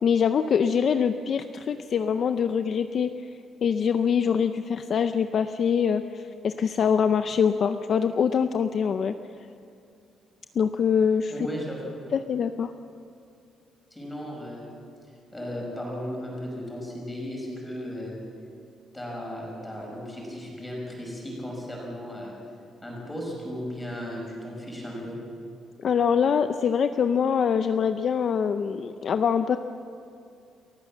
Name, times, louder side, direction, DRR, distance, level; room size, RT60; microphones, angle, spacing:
voice 1, 0.0-3.1 3.6-9.1 10.6-11.3 12.1-12.7 25.8-29.6, left 7 dB, 40° left, 9 dB, 0.5 m, -24 dB
voice 2, 11.3-11.8 13.9-14.7 15.3-18.2 18.9-22.4 22.8-25.2, equal, 10° left, -2 dB, 5.6 m, -35 dB
29.5 x 15.0 x 7.3 m, 2.5 s
cardioid pair, 175°, 0 cm